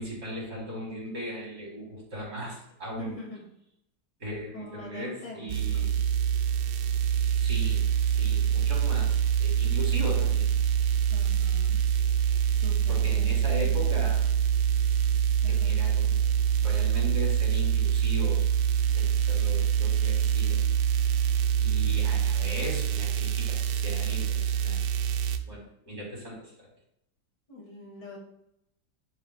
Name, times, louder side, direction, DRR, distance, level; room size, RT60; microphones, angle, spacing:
voice 1, 0.0-3.2 4.2-5.9 7.4-10.5 12.9-14.3 15.5-18.4 18.9-20.6 21.6-24.8 25.4-26.7, equal, 55° right, -4 dB, 4.0 m, -38 dB
voice 2, 3.0-3.4 4.5-5.6 11.1-11.8 12.6-14.1 15.4-15.8 27.5-28.2, left 2 dB, 70° left, -2 dB, 3.1 m, -45 dB
sound 1, 5.5-25.4, right 9 dB, 80° right, 1.2 m, -25 dB
11.0 x 7.3 x 2.4 m, 0.77 s
omnidirectional pair, 1.9 m